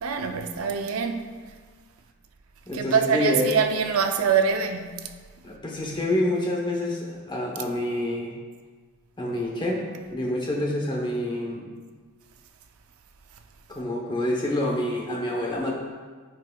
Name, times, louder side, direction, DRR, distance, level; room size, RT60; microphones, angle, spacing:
voice 1, 0.0-1.3 2.7-5.1, right 6 dB, 85° right, 0.5 m, -24 dB
voice 2, 2.7-3.5 5.4-8.3 9.2-11.7 13.7-15.7, left 1 dB, 20° left, 1.0 m, -27 dB
12.5 x 4.7 x 2.3 m
head